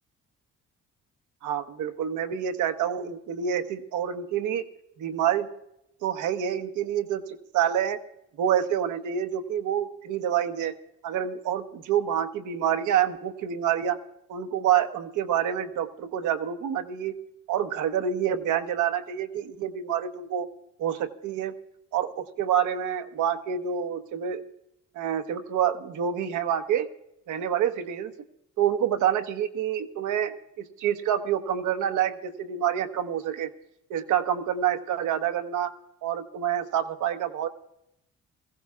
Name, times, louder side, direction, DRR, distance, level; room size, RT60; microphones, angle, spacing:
voice 1, 1.4-4.7 5.0-5.5 6.0-7.2 7.5-8.0 8.4-10.7 11.0-14.0 14.3-17.1 17.5-20.5 20.8-21.5 21.9-24.4 24.9-26.9 27.3-28.1 28.6-33.5 33.9-35.7 36.0-37.5, right 9 dB, 80° right, 8 dB, 1.0 m, -27 dB
22.0 x 15.5 x 2.4 m, 0.80 s
cardioid pair, 90°, 30 cm